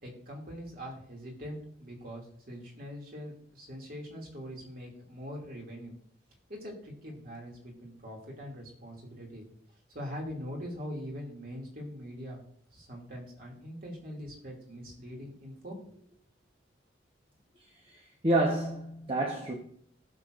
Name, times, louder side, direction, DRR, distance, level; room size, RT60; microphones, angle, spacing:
voice 1, 0.0-6.0 6.5-9.5 9.9-12.4 12.7-15.8, equal, 45° right, 2.6 m, -42 dB
voice 2, 17.9-19.5, right 1 dB, 30° right, 1.1 m, -29 dB
19.0 x 6.5 x 2.6 m
head